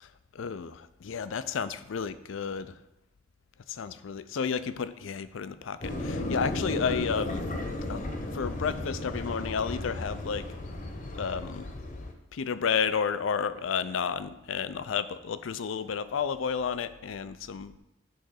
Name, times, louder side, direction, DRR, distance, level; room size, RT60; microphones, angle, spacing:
voice 1, 0.3-2.8 3.7-7.5 7.9-8.1 8.3-10.5 11.1-11.7 12.3-17.7, left 6 dB, 85° left, 14 dB, 0.5 m, -31 dB
sound 1, 5.8-12.1, left 1 dB, 40° left, 0.9 m, -34 dB
10.0 x 3.8 x 6.4 m, 0.90 s
head